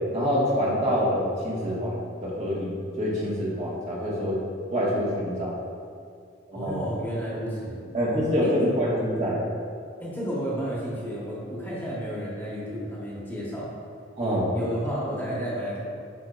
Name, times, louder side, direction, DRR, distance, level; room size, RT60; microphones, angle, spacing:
voice 1, 0.1-4.4 4.7-5.5 6.5-6.8 7.9-9.4 14.2-14.5, equal, 35° right, -6 dB, 1.4 m, -26 dB
voice 2, 6.5-7.8 8.4-8.7 10.0-13.7 14.5-15.8, equal, 10° left, -6 dB, 1.3 m, -31 dB
8.3 x 5.9 x 2.5 m, 2.3 s
head